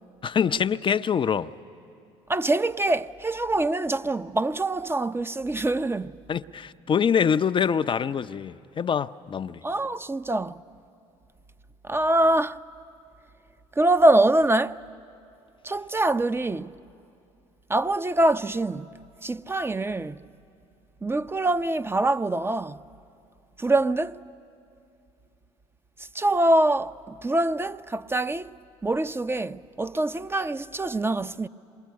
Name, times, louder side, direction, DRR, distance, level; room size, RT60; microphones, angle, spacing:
voice 1, 0.2-1.5 6.3-9.6, left 7 dB, 35° left, 0.6 m, -25 dB
voice 2, 2.3-6.2 9.6-10.6 11.8-12.6 13.8-14.8 15.6-16.7 17.7-18.9 19.2-20.2 21.0-22.8 23.6-24.2 26.1-28.5 28.8-31.5, right 2 dB, 15° right, 0.6 m, -24 dB
26.5 x 22.0 x 9.4 m
hypercardioid pair, 60°, 15 cm